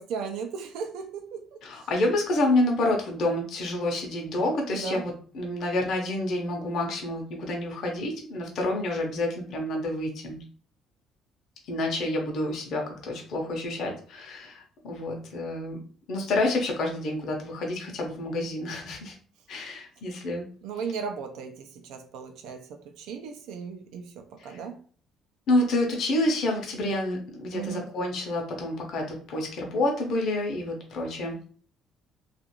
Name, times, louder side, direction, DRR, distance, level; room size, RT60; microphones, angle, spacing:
voice 1, 0.0-1.6 4.7-5.0 20.6-24.7 27.5-27.8, right 6 dB, 80° right, 4 dB, 0.5 m, -36 dB
voice 2, 1.6-10.4 11.7-15.8 16.1-19.1 19.5-20.5 24.4-24.6 25.5-31.4, left 1 dB, 55° left, 1 dB, 0.7 m, -28 dB
2.5 x 2.4 x 2.9 m, 0.43 s
cardioid pair, 145°, 0 cm